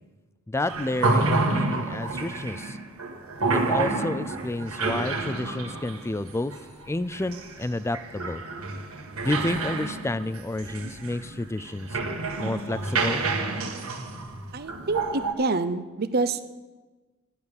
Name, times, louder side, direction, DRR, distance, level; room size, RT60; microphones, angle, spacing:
voice 1, 0.5-2.8 3.5-6.5 6.9-8.4 9.2-12.0 12.4-13.2, left 2 dB, 10° left, 15 dB, 0.3 m, -30 dB
sound 1, 0.7-15.3, right 3 dB, 80° right, 1.6 m, -29 dB
voice 2, 14.5-16.4, right 3 dB, 45° right, 12 dB, 0.6 m, -27 dB
12.0 x 7.0 x 9.6 m, 1.3 s
head